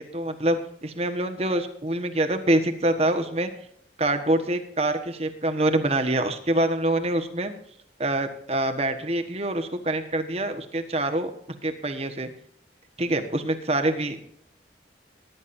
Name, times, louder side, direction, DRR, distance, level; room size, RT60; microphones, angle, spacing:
voice 1, 0.0-3.5 4.0-7.5 8.0-11.3 11.6-12.3 13.0-14.3, right 1 dB, 35° right, 8 dB, 1.3 m, -25 dB
20.0 x 10.5 x 2.7 m, 0.70 s
head